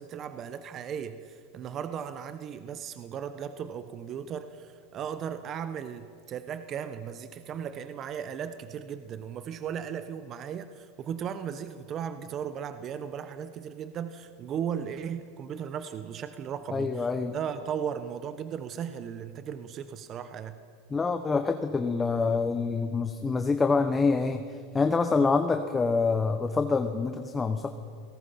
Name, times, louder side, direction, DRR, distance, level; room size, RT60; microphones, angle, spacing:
voice 1, 0.0-20.6, right 8 dB, 35° right, 11 dB, 1.0 m, -36 dB
voice 2, 16.7-17.3 20.9-24.4 24.7-27.7, left 4 dB, 15° left, 7 dB, 1.1 m, -26 dB
29.5 x 18.0 x 5.8 m, 2.2 s
hypercardioid pair, 110°, 0 cm